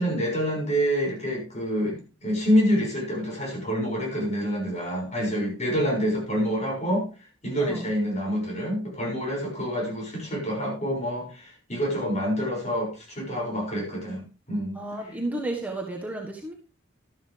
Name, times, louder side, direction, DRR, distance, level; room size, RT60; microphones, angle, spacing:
voice 1, 0.0-7.1 7.4-14.8, equal, 35° left, -1 dB, 6.5 m, -27 dB
voice 2, 14.7-16.5, right 2 dB, 10° right, 0 dB, 1.5 m, -32 dB
13.0 x 11.5 x 3.4 m, 0.34 s
head